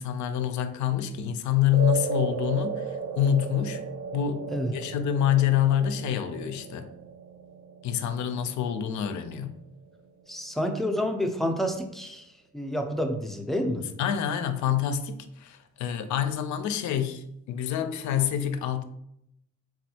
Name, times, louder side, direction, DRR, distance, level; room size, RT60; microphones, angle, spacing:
voice 1, 0.0-3.8 4.1-6.9 7.8-9.6 14.0-18.8, left 9 dB, 70° left, 0.4 m, -27 dB
sound 1, 1.7-10.2, right 5 dB, 65° right, 0.5 m, -36 dB
voice 2, 10.3-12.3 12.5-13.8, equal, ahead, 0.4 m, -29 dB
3.3 x 2.3 x 2.7 m
cardioid pair, 90°, 30 cm